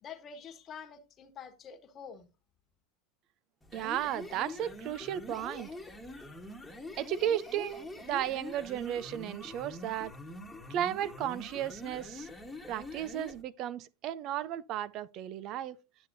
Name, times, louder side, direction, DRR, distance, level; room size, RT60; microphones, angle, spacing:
voice 1, 0.0-2.3, left 6 dB, 35° left, 1.3 m, -47 dB
sound 1, 3.6-13.4, left 2 dB, 5° left, 1.4 m, -45 dB
voice 2, 3.7-5.7 7.0-10.1 10.7-12.3 12.7-15.8, right 11 dB, 50° right, 0.5 m, -34 dB
9.7 x 6.7 x 2.7 m
hypercardioid pair, 105°, 0 cm